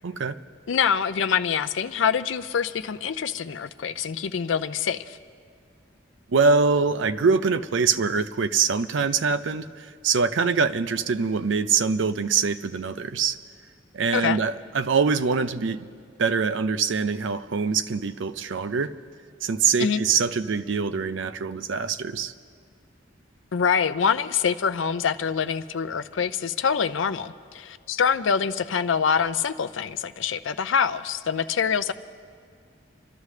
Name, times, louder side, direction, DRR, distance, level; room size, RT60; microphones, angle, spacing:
voice 1, 0.0-0.4 6.3-13.4 13.9-15.9 16.2-19.0 19.4-22.3, right 5 dB, 75° right, 0.5 m, -24 dB
voice 2, 0.7-5.2 14.1-14.4 19.8-20.0 23.5-31.9, left 6 dB, 80° left, 0.5 m, -25 dB
28.0 x 13.0 x 3.3 m
head